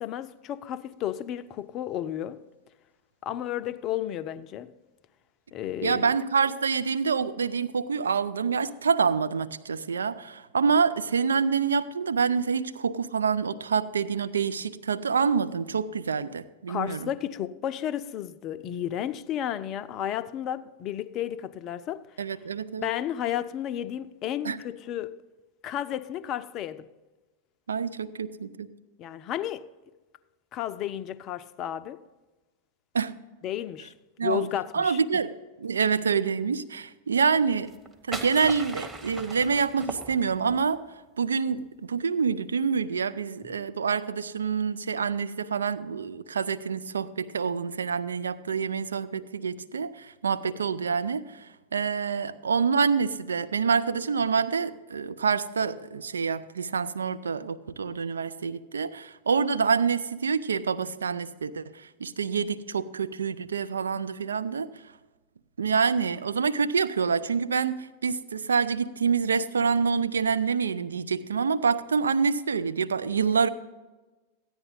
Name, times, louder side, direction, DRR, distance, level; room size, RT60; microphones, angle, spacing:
voice 1, 0.0-2.4 3.2-4.7 5.5-6.1 16.7-22.1 22.8-25.1 25.6-26.9 29.0-29.7 30.5-32.0 33.4-33.9 34.2-35.2, left 11 dB, 35° left, 0.5 m, -32 dB
voice 2, 5.8-17.1 22.2-22.9 24.4-24.6 27.7-28.7 32.9-33.1 34.2-34.5 34.7-37.7 38.1-40.8 41.2-64.7 65.6-73.5, right 5 dB, 70° right, 0.5 m, -27 dB
sound 1, 37.6-40.6, right 2 dB, 10° right, 1.2 m, -39 dB
14.0 x 9.5 x 3.9 m
figure-of-eight pair, 90°, 0 cm